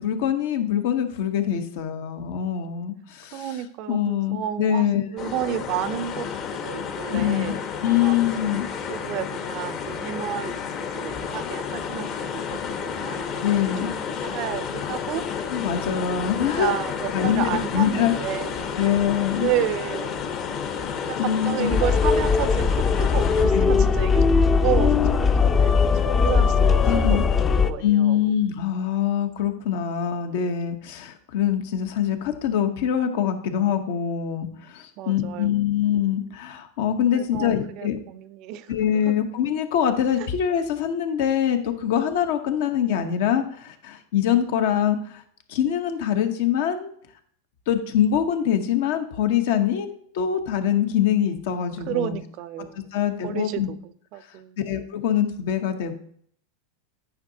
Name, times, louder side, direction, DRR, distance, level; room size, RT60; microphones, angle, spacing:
voice 1, 0.0-3.5 3.9-5.1 7.1-7.5 7.8-8.7 13.4-13.9 15.5-16.7 17.1-18.1 18.8-19.5 21.2-21.8 23.5-23.7 26.9-27.2 27.8-38.0 38.7-45.2 45.5-46.9 47.7-49.9 50.1-52.2 52.9-53.7 54.6-55.9, left 9 dB, 65° left, 7 dB, 1.0 m, -24 dB
voice 2, 3.3-7.6 8.0-8.2 8.9-13.4 14.2-15.2 16.4-18.8 19.4-20.2 21.1-22.7 23.0-28.2 35.0-35.7 37.1-38.7 39.1-39.2 40.2-40.3 51.9-52.9 53.2-54.6, right 11 dB, 50° right, 14 dB, 0.5 m, -31 dB
sound 1, 5.2-23.4, left 6 dB, 45° left, 1.0 m, -31 dB
sound 2, 21.7-27.7, left 5 dB, 25° left, 0.6 m, -19 dB
9.4 x 5.5 x 2.8 m, 0.62 s
hypercardioid pair, 100°, 0 cm